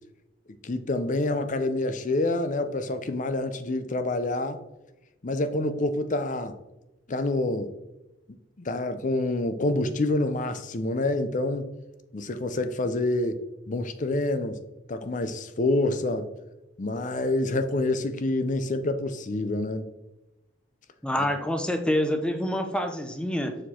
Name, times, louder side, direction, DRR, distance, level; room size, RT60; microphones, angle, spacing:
voice 1, 0.6-4.6 5.2-6.6 7.1-7.7 8.6-11.7 12.1-13.4 13.7-14.6 14.9-16.3 16.8-19.9, left 2 dB, 45° left, 0.6 m, -27 dB
voice 2, 21.0-23.6, left 1 dB, 5° left, 0.7 m, -27 dB
7.0 x 4.4 x 4.4 m
head